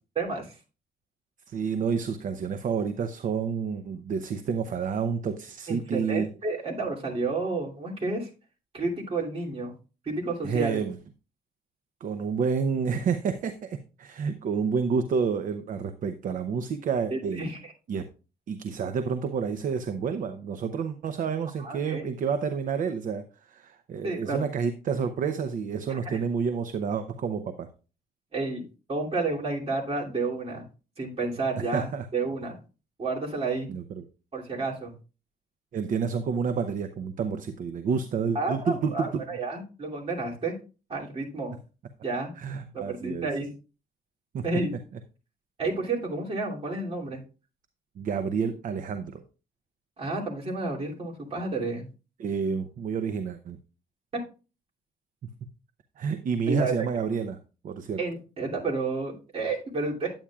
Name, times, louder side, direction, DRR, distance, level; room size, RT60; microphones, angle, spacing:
voice 1, 0.2-0.6 5.7-8.3 8.7-9.7 10.0-10.8 17.1-17.7 21.6-22.0 24.0-24.5 25.9-26.2 28.3-30.7 31.0-32.6 33.0-33.7 34.3-34.9 38.3-40.6 40.9-41.5 42.0-42.3 42.7-43.5 44.4-44.7 45.6-47.2 50.0-51.9 54.1-54.2 56.5-56.7 58.0-60.1, right 3 dB, 35° right, -2 dB, 2.8 m, -31 dB
voice 2, 1.5-6.3 10.4-11.0 12.0-17.5 17.9-18.1 18.5-27.7 31.6-32.1 33.7-34.0 35.7-39.2 42.4-43.3 44.3-44.5 48.0-49.2 52.2-53.6 55.2-55.5 56.0-57.4 57.6-58.0, right 6 dB, 55° right, 9 dB, 0.7 m, -29 dB
9.8 x 8.8 x 2.4 m, 0.33 s
cardioid pair, 125°, 17 cm